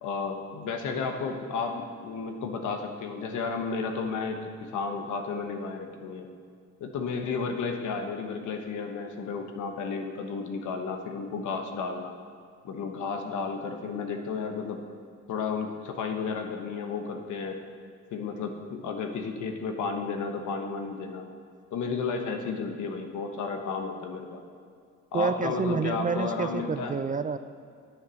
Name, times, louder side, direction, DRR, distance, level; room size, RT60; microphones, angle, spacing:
voice 1, 0.0-6.3 6.8-12.1 12.6-14.8 15.3-17.6 18.1-21.3 21.7-24.4 25.1-26.9, left 5 dB, 80° left, 5 dB, 1.2 m, -32 dB
voice 2, 25.1-27.4, right 5 dB, 30° right, 11 dB, 0.4 m, -28 dB
9.6 x 7.0 x 6.4 m, 2.2 s
cardioid pair, 90°, 30 cm